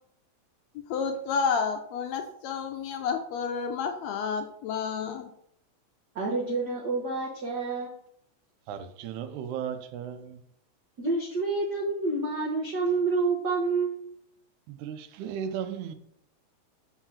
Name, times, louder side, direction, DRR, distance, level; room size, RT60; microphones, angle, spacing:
voice 1, 0.9-5.3, left 5 dB, 80° left, 1.6 m, -30 dB
voice 2, 6.1-7.9 11.0-14.0, right 3 dB, 70° right, 0.9 m, -28 dB
voice 3, 8.7-10.4 14.7-15.9, right 8 dB, 85° right, 2.0 m, -36 dB
4.9 x 4.6 x 5.7 m
omnidirectional pair, 3.4 m